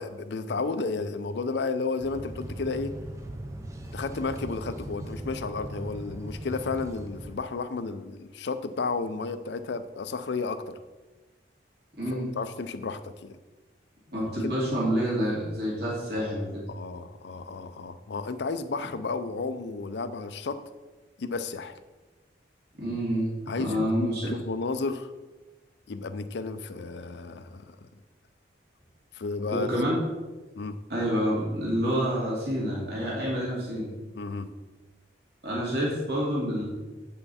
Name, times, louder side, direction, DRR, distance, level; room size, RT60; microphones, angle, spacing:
voice 1, 0.0-2.9 3.9-10.8 12.1-13.4 14.4-14.7 16.7-20.6 21.2-21.8 23.5-25.1 25.9-27.9 29.1-29.7 30.6-30.8 34.1-34.5, left 4 dB, 70° left, 11 dB, 0.5 m, -32 dB
sound 1, 2.0-7.4, right 1 dB, 15° right, 0.6 m, -39 dB
voice 2, 12.0-12.3 14.1-16.6 22.7-23.3 23.6-24.3 29.5-30.0 30.9-33.9 35.4-36.6, equal, 55° right, -6 dB, 2.6 m, -28 dB
7.9 x 5.7 x 4.2 m, 1.2 s
head